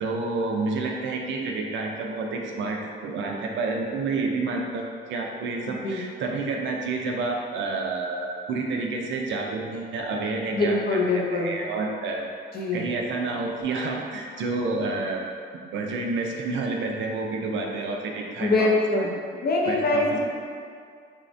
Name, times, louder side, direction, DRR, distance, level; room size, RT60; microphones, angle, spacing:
voice 1, 0.0-12.2 12.7-15.2 15.7-18.7 19.7-20.2, right 3 dB, 70° right, 0 dB, 0.4 m, -29 dB
voice 2, 5.7-6.0 10.5-11.5 12.5-12.9 18.4-19.1 19.4-20.2, left 2 dB, 50° left, -1 dB, 0.5 m, -23 dB
3.2 x 2.1 x 2.5 m, 2.2 s
cardioid pair, 90°, 20 cm